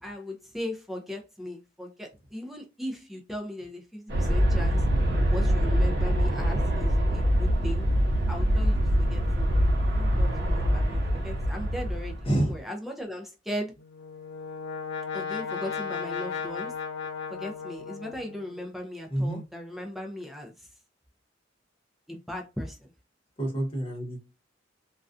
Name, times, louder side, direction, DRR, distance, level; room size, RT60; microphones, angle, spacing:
voice 1, 0.0-4.8 5.3-7.9 8.3-9.5 9.9-13.7 15.1-16.8 17.3-20.7 22.1-22.9, left 1 dB, ahead, 0.3 m, -38 dB
Aircraft, 4.1-12.5, equal, 60° right, 0.7 m, -24 dB
voice 2, 12.2-12.5 19.1-19.4 23.4-24.2, right 1 dB, 30° left, 0.7 m, -27 dB
Brass instrument, 13.8-18.6, left 6 dB, 70° left, 0.6 m, -35 dB
2.3 x 2.2 x 2.4 m
head